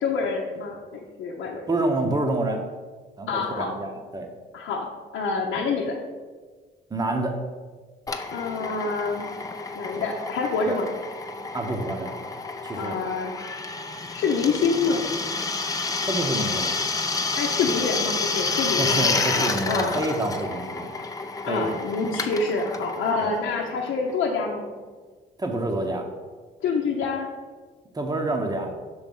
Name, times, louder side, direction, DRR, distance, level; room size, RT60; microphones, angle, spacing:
voice 1, 0.0-1.6 3.3-3.7 4.5-4.9 5.1-6.0 8.3-9.2 9.7-10.9 12.8-13.3 14.1-15.0 17.4-19.9 21.4-24.7 26.6-27.3, left 4 dB, 75° left, -2 dB, 0.8 m, -26 dB
voice 2, 1.7-2.6 3.2-4.3 6.9-7.4 10.7-10.8 11.5-12.2 12.6-13.0 16.1-16.7 18.8-20.9 21.5-21.7 23.2-23.3 25.4-26.0 27.9-28.7, right 2 dB, 20° right, 4 dB, 0.8 m, -27 dB
Drill, 8.1-24.4, left 3 dB, 15° left, 0.5 m, -29 dB
6.2 x 3.3 x 5.3 m, 1.4 s
cardioid pair, 90°, 20 cm